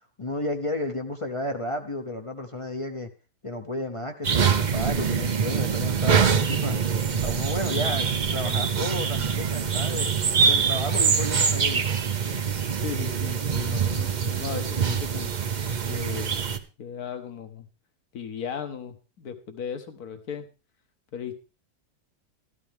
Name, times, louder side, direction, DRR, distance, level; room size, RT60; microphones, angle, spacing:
voice 1, 0.2-3.1 3.4-6.8 7.2-10.1 10.4-12.1, left 1 dB, 25° left, 5 dB, 0.7 m, -32 dB
sound 1, 4.2-16.6, right 6 dB, 45° right, 0.6 m, -24 dB
voice 2, 12.8-15.3 15.9-16.3 16.8-17.7 18.1-20.5 21.1-21.3, left 7 dB, 65° left, 8 dB, 1.8 m, -36 dB
13.0 x 12.5 x 3.6 m, 0.32 s
omnidirectional pair, 1.8 m